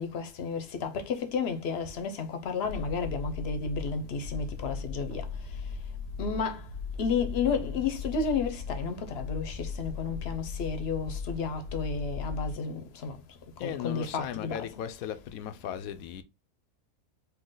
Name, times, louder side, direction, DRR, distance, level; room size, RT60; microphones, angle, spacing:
voice 1, 0.0-5.5 6.2-6.7 7.0-13.2 13.6-14.6, left 5 dB, 50° left, 0.9 m, -32 dB
sound 1, 2.6-12.5, left 5 dB, 65° right, 1.2 m, -38 dB
voice 2, 13.6-16.2, left 10 dB, 75° left, 1.0 m, -36 dB
4.3 x 2.8 x 3.8 m
omnidirectional pair, 1.5 m